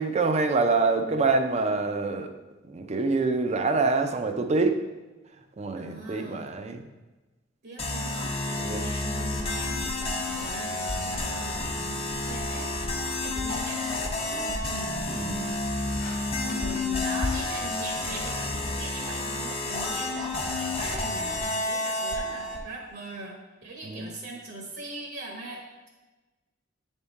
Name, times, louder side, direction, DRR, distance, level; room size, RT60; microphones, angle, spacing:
voice 1, 0.0-2.3 2.7-4.8 5.6-6.8 8.6-8.8 15.1-15.5 23.8-24.1, right 3 dB, 35° right, 6 dB, 0.5 m, -26 dB
voice 2, 5.8-6.5 7.6-12.8 13.2-15.4 16.4-25.9, right 2 dB, 60° right, 0 dB, 1.0 m, -41 dB
sound 1, 7.8-22.6, left 2 dB, 30° left, 0.8 m, -30 dB
sound 2, 9.5-19.3, left 1 dB, 50° left, 1.1 m, -40 dB
7.9 x 3.6 x 4.1 m, 1.2 s
head